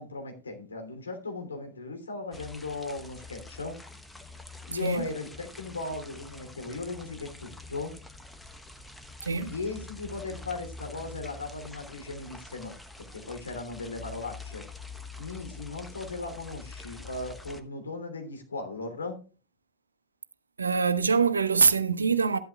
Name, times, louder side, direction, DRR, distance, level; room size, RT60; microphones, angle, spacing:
voice 1, 0.0-3.8 4.7-7.9 9.5-12.7 13.1-14.6 15.2-19.2, left 3 dB, 75° left, 3.1 m, -37 dB
sound 1, 2.3-17.6, left 3 dB, 5° left, 1.1 m, -46 dB
voice 2, 9.2-9.5 20.6-22.4, right 5 dB, 75° right, 0.9 m, -24 dB
13.5 x 11.5 x 2.4 m
figure-of-eight pair, 90°, 0 cm